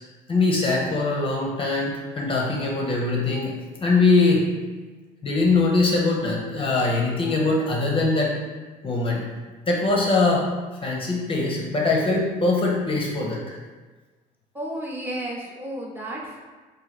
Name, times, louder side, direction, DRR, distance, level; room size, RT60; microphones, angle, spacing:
voice 1, 0.3-4.5 5.2-8.4 8.8-9.3 9.7-10.5 10.8-13.6, left 3 dB, 30° left, -1 dB, 0.6 m, -22 dB
voice 2, 14.5-16.4, right 1 dB, 10° right, -3 dB, 0.7 m, -32 dB
3.1 x 2.6 x 4.0 m, 1.3 s
cardioid pair, 110°, 17 cm